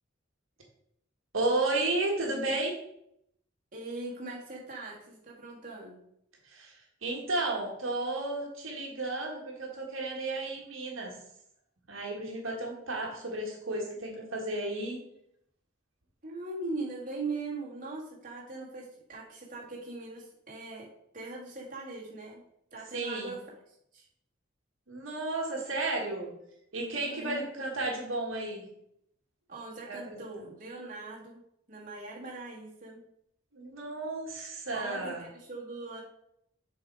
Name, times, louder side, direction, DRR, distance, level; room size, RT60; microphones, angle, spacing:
voice 1, 1.3-2.8 6.5-11.1 11.9-15.0 22.9-23.4 24.9-26.3 26.7-28.6 29.9-30.3 33.5-35.2, right 2 dB, 80° right, -1 dB, 1.8 m, -33 dB
voice 2, 3.7-6.0 16.2-20.9 21.1-22.4 22.7-23.4 23.9-24.1 27.0-27.5 29.5-31.4 31.7-33.0 34.7-36.0, right 3 dB, 40° right, -4 dB, 1.9 m, -40 dB
6.8 x 4.8 x 4.7 m, 0.74 s
head